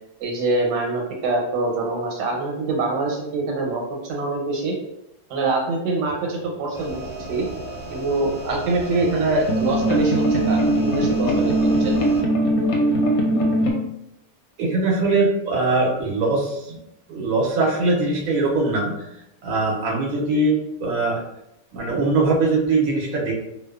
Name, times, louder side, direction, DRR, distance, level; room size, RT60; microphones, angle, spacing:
voice 1, 0.2-4.7 5.3-7.0 7.3-7.5 7.9-11.9, right 3 dB, 90° right, 0 dB, 1.3 m, -24 dB
sound 1, 6.7-12.2, right 1 dB, 40° right, 0.8 m, -34 dB
sound 2, 7.6-7.7 7.9-8.0 9.5-13.7, right 1 dB, 70° left, 0.9 m, -20 dB
voice 2, 14.6-16.8 17.1-18.9 19.4-21.2 21.7-23.3, right 3 dB, 65° right, -3 dB, 1.0 m, -21 dB
2.7 x 2.2 x 2.2 m, 0.82 s
omnidirectional pair, 1.8 m